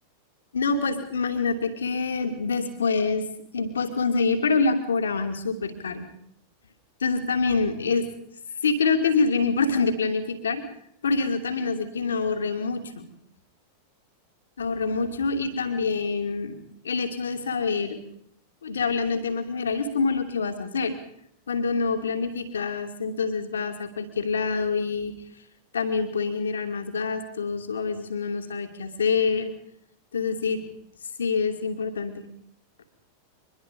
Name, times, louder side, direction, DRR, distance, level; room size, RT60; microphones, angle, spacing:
voice 1, 0.5-3.3 3.5-6.1 7.0-8.1 8.6-10.6 11.0-13.1 14.6-16.6 16.8-18.0 18.6-21.0 21.5-25.1 25.7-29.5 30.1-30.6 31.2-32.2, left 4 dB, 70° left, 8 dB, 2.7 m, -26 dB
24.5 x 21.5 x 5.4 m, 0.72 s
figure-of-eight pair, 90°, 0 cm